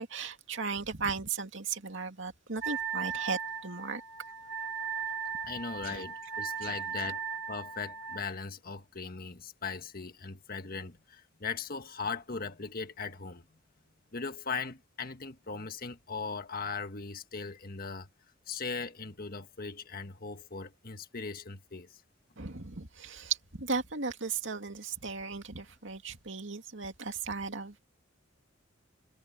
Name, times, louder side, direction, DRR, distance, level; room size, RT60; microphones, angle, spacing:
voice 1, 0.0-4.0 5.8-6.0 6.6-6.8 7.0-7.1 22.4-27.8, right 5 dB, 65° right, 2.6 m, -36 dB
Wind instrument woodwind instrument, 2.6-8.2, right 6 dB, 90° right, 3.0 m, -37 dB
voice 2, 5.4-7.2 7.5-13.4 14.1-18.1 18.5-22.0, left 4 dB, 45° left, 1.6 m, -39 dB
head